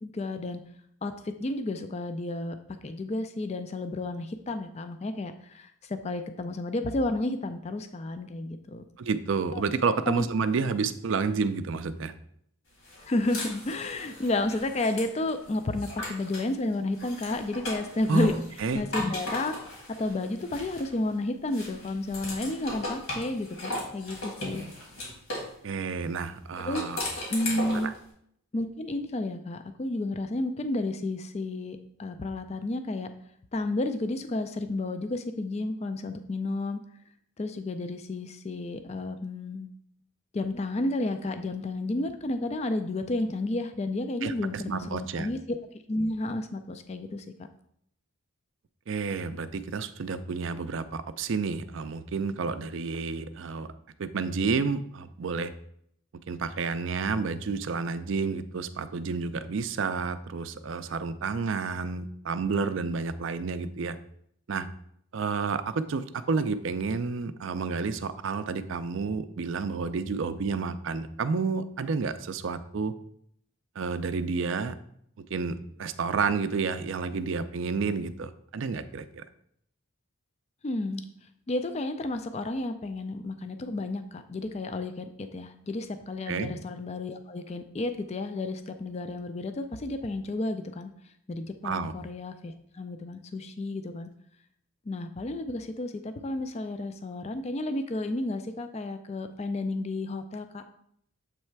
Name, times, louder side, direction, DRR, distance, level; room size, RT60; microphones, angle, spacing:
voice 1, 0.0-0.6 1.0-2.6 2.8-8.8 9.5-9.6 10.1-10.3 13.0-18.3 18.7-19.5 20.0-24.6 26.6-26.8 27.3-27.9 28.5-33.1 33.5-36.8 37.4-39.7 40.3-45.6 45.9-47.2 80.6-81.0 81.5-90.9 91.3-94.1 94.9-100.6, left 2 dB, 30° left, 8 dB, 0.3 m, -31 dB
voice 2, 9.0-12.1 18.1-18.3 18.6-18.8 25.6-27.0 27.7-27.9 44.2-45.3 48.9-53.7 54.0-55.5 56.3-64.0 64.5-64.7 65.1-72.9 73.8-74.7 75.3-79.2 86.3-86.5 91.6-91.9, right 4 dB, 60° right, 12 dB, 0.4 m, -30 dB
sound 1, 12.8-16.5 16.9-21.1 21.5-25.5 26.6-28.0, left 1 dB, 65° left, 2.2 m, -37 dB
7.5 x 3.2 x 4.5 m, 0.69 s
head